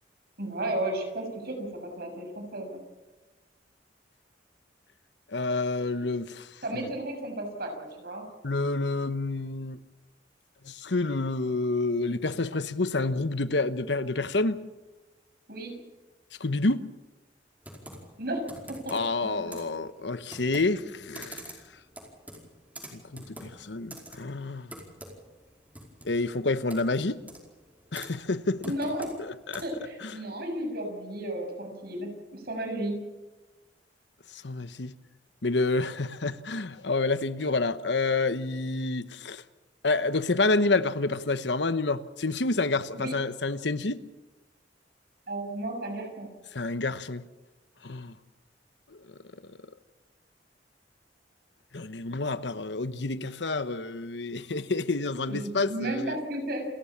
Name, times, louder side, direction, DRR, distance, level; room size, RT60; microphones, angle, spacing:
voice 1, 0.4-2.8 6.6-8.3 15.5-15.7 18.2-18.4 18.7-18.9 19.2-19.7 28.6-29.1 29.6-33.0 43.0-43.2 45.3-46.3 55.3-56.7, right 1 dB, 60° right, 6.6 m, -33 dB
voice 2, 5.3-6.5 6.8-6.9 8.4-9.8 10.6-14.6 16.4-16.8 18.9-21.5 22.9-24.7 26.0-27.2 27.9-28.6 29.2-29.6 30.0-30.1 34.3-34.9 35.4-39.4 39.8-44.0 46.5-47.2 47.8-48.1 51.7-56.2, left 3 dB, 70° left, 1.1 m, -28 dB
Computer keyboard, 17.6-29.9, right 1 dB, 10° right, 4.9 m, -47 dB
29.5 x 14.0 x 7.2 m
head